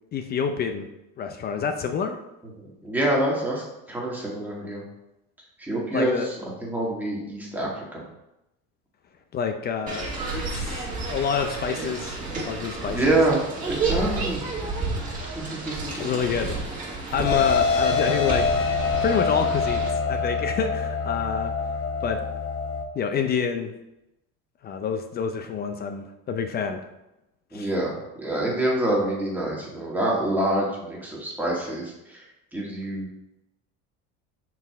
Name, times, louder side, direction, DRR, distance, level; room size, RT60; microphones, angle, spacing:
voice 1, 0.1-0.9 1.2-2.2 5.9-6.3 9.3-12.2 12.5-13.2 13.9-14.2 16.0-16.6 17.1-21.5 22.0-22.2 22.9-23.7 24.6-26.8 27.5-27.7, left 6 dB, 35° left, 6 dB, 0.5 m, -28 dB
voice 2, 2.8-4.8 5.6-6.4 6.6-8.0 12.9-13.4 13.7-14.5 15.2-16.2 27.5-27.9 28.2-32.2 32.5-33.1, right 1 dB, 5° right, -4 dB, 1.8 m, -26 dB
sound 1, 9.9-19.9, right 3 dB, 25° right, 1.9 m, -31 dB
sound 2, 17.2-22.8, left 5 dB, 50° left, 0.9 m, -25 dB
5.8 x 4.8 x 3.4 m, 0.91 s
cardioid pair, 125°, 29 cm